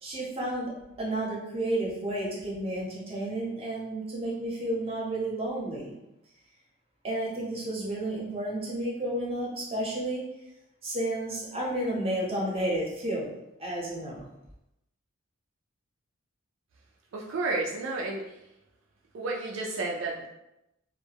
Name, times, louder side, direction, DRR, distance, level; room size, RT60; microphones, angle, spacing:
voice 1, 0.0-0.7 1.0-5.9 7.0-10.3 10.8-13.3 13.6-14.3, right 1 dB, 30° right, -4 dB, 0.7 m, -31 dB
voice 2, 17.1-18.4 19.1-20.3, right 3 dB, 65° right, -3 dB, 0.4 m, -31 dB
2.1 x 2.1 x 3.3 m, 0.88 s
head